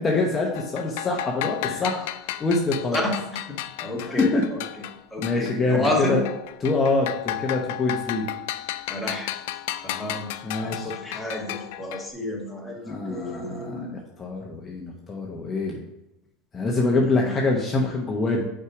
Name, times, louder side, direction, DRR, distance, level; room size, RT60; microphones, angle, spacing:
voice 1, 0.0-2.1 2.4-3.0 4.0-4.4 5.2-6.2 6.6-8.2 10.4-10.9 12.8-15.8 16.5-18.5, left 3 dB, 25° left, -1 dB, 0.9 m, -25 dB
sound 1, 0.5-5.6 5.8-12.1, left 14 dB, 75° left, 0.4 m, -34 dB
voice 2, 2.9-4.8 5.1-6.2 8.9-9.3 9.8-10.3 10.6-13.9 16.8-17.3, left 1 dB, ahead, -3 dB, 1.6 m, -31 dB
5.4 x 4.8 x 4.8 m, 0.95 s
supercardioid pair, 125°, 0 cm